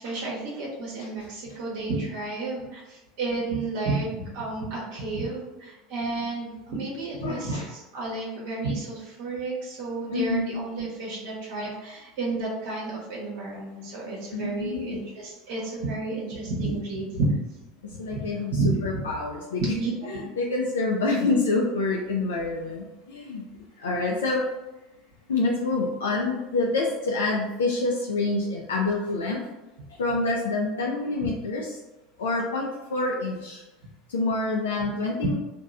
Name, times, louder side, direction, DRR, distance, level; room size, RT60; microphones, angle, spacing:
voice 1, 0.0-17.3 18.1-18.2 18.5-18.7 19.8-20.2 31.2-31.3, right 3 dB, 70° right, -5 dB, 0.7 m, -31 dB
voice 2, 7.2-7.7 10.1-10.6 14.3-14.9 17.8-19.7 20.1-23.4 23.8-24.5 25.3-29.4 30.0-31.8 32.2-33.6 34.1-35.4, left 3 dB, 80° left, -2 dB, 0.3 m, -27 dB
2.8 x 2.2 x 2.4 m, 1.0 s
hypercardioid pair, 75°, 0 cm